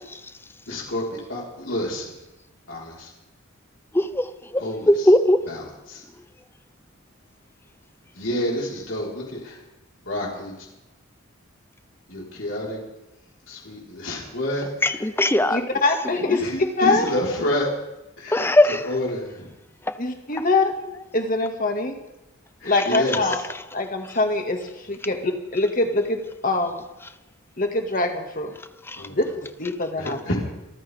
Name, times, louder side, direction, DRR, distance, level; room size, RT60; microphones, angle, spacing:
voice 1, 0.7-2.1 2.7-3.1 4.6-4.9 5.5-5.6 5.9-6.0 8.2-9.5 10.1-10.5 12.1-12.8 13.5-14.7 16.4-17.7 18.2-19.5 22.6-23.2 29.0-29.1 30.0-30.4, left 1 dB, 65° left, -3 dB, 4.8 m, -28 dB
voice 2, 4.9-5.4 14.8-15.6 18.3-18.8 22.7-23.0, left 1 dB, 10° left, 12 dB, 0.6 m, -18 dB
voice 3, 15.5-16.4 16.8-17.1 20.0-22.0 22.6-23.4 23.7-24.6 24.9-26.8 27.6-28.5 29.1-30.2, left 2 dB, 40° left, 4 dB, 2.3 m, -24 dB
25.5 x 14.0 x 3.7 m, 0.96 s
head